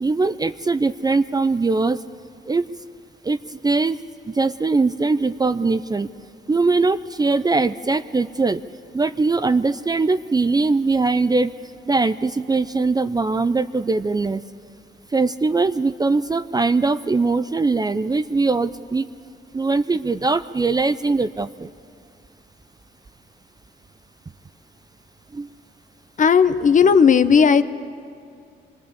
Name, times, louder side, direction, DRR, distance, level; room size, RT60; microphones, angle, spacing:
voice 1, 0.0-2.0 2.5-2.7 3.3-3.4 3.6-4.0 4.3-6.1 6.5-8.6 8.9-11.5 11.9-14.4 15.1-19.1 19.5-21.7 25.3-25.5, right 3 dB, 20° right, 13 dB, 0.5 m, -21 dB
voice 2, 26.2-27.6, left 6 dB, 40° left, 10 dB, 0.9 m, -14 dB
24.5 x 20.5 x 8.3 m, 2.3 s
cardioid pair, 90°, 20 cm